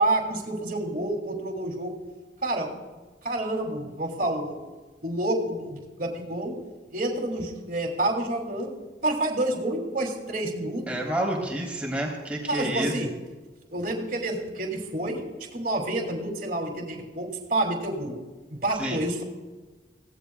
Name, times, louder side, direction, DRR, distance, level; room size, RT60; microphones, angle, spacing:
voice 1, 0.0-1.9 2.4-2.7 3.2-4.6 5.0-6.6 6.9-8.7 9.0-10.8 12.5-13.1 13.7-15.2 15.5-18.1 18.5-19.2, right 2 dB, 50° right, -1 dB, 2.6 m, -28 dB
voice 2, 10.9-12.9 18.8-19.0, right 1 dB, 10° right, -2 dB, 3.4 m, -29 dB
25.0 x 16.5 x 2.3 m, 1.3 s
head